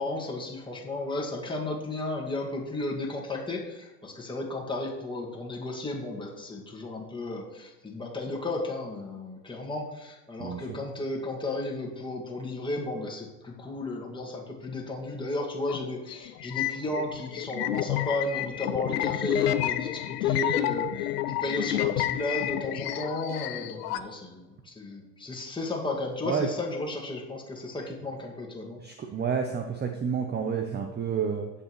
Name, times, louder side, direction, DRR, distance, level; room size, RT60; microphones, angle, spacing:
voice 1, 0.0-28.8, left 2 dB, 10° left, -2 dB, 2.1 m, -34 dB
sound 1, 15.7-15.8 16.1-24.0, left 14 dB, 70° left, 0.7 m, -30 dB
voice 2, 28.8-31.5, right 6 dB, 20° right, 5 dB, 0.8 m, -29 dB
16.0 x 5.6 x 3.2 m, 1.1 s
hypercardioid pair, 80°, 48 cm